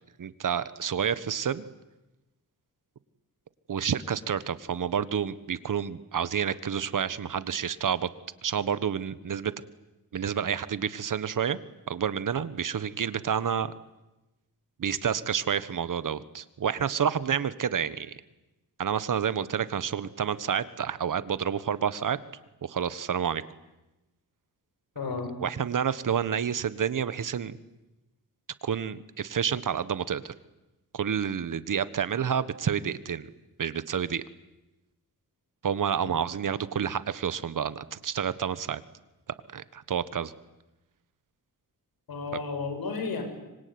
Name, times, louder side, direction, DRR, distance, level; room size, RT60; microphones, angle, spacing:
voice 1, 0.2-1.6 3.7-8.1 8.4-9.5 10.1-11.6 11.9-13.7 14.8-18.2 18.8-22.2 22.6-23.4 25.4-27.6 28.6-30.3 30.9-33.3 33.6-34.2 35.6-38.8 39.5-40.3 42.3-42.4, right 8 dB, 60° right, 15 dB, 1.5 m, -29 dB
voice 2, 25.0-25.3 42.1-43.2, left 4 dB, 75° left, 6 dB, 7.2 m, -32 dB
25.5 x 23.5 x 9.6 m, 1.0 s
wide cardioid pair, 105°, 36 cm